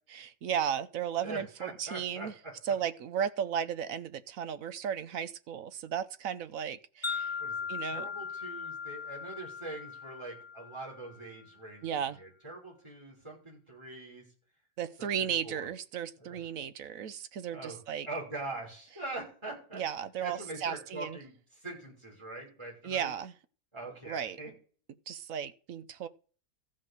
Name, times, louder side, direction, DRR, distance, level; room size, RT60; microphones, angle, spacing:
voice 1, 0.1-2.3 2.6-7.3 7.7-8.1 11.8-12.2 14.8-18.1 19.7-21.2 22.8-23.3 24.1-24.4 25.1-26.1, right 8 dB, 70° right, 1.1 m, -35 dB
voice 2, 1.2-2.5 7.4-14.2 15.0-15.7 16.2-16.4 17.5-17.8 18.0-19.8 20.2-23.1 23.7-24.5, right 2 dB, 20° right, 5.9 m, -43 dB
Wind chime, 7.0-11.3, left 6 dB, 45° left, 0.3 m, -39 dB
14.5 x 5.3 x 6.6 m
omnidirectional pair, 1.6 m